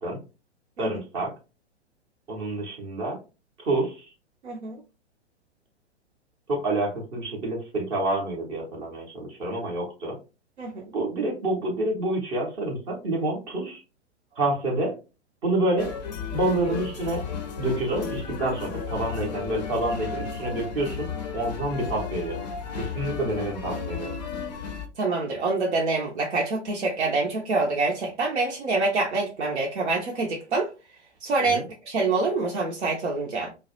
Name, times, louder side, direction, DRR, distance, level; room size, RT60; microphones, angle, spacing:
voice 1, 0.8-1.3 2.3-3.2 3.6-4.1 6.5-10.2 10.9-13.8 14.4-14.9 15.4-15.9 16.3-17.2 17.6-21.1 21.3-22.4 22.8-24.1 31.4-31.6, right 2 dB, 15° right, 0.5 m, -28 dB
voice 2, 4.4-4.8 10.6-10.8 25.0-30.7 31.2-33.5, right 3 dB, 70° right, 0.6 m, -26 dB
sound 1, 15.8-24.9, left 5 dB, 40° left, 0.4 m, -33 dB
2.2 x 2.0 x 2.7 m
figure-of-eight pair, 110°, 35 cm